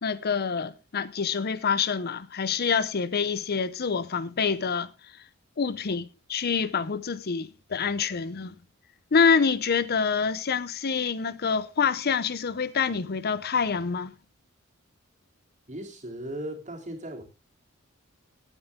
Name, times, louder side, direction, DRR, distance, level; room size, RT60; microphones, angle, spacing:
voice 1, 0.0-5.2 5.6-8.5 9.1-14.1, left 5 dB, 50° left, 0.6 m, -26 dB
voice 2, 15.7-17.2, right 1 dB, 35° right, 3.1 m, -37 dB
16.0 x 9.0 x 3.6 m
head